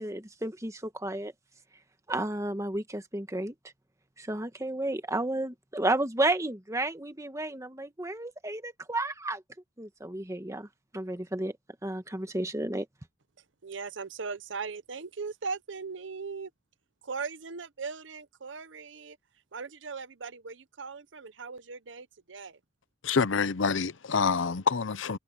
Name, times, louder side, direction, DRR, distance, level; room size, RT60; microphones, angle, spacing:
voice 1, 0.0-1.3 1.7-1.8 2.1-3.7 4.2-9.4 9.8-11.6 11.8-12.9, right 2 dB, 15° right, 1.5 m, -32 dB
voice 2, 13.6-16.5 17.0-19.2 19.5-22.6, right 5 dB, 75° right, 0.8 m, -39 dB
voice 3, 23.0-25.2, left 5 dB, 90° left, 0.7 m, -27 dB
head